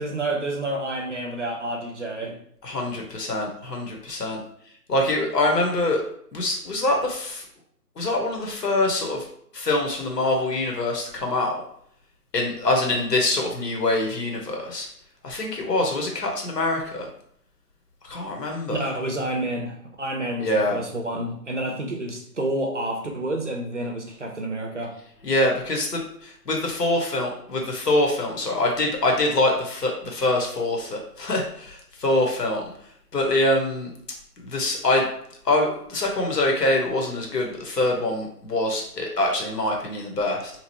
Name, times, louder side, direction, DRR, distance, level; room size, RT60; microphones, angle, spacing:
voice 1, 0.0-2.4 18.7-24.9, right 1 dB, 50° right, 2 dB, 0.5 m, -29 dB
voice 2, 2.6-4.4 4.9-6.0 6.3-7.4 8.0-9.3 9.5-11.5 12.3-14.9 15.2-17.1 18.0-18.9 20.4-20.8 25.2-32.7 33.1-33.9 34.4-35.1 35.4-40.5, left 2 dB, 75° left, 1 dB, 1.2 m, -24 dB
2.9 x 2.4 x 2.9 m, 0.66 s
figure-of-eight pair, 170°, 49 cm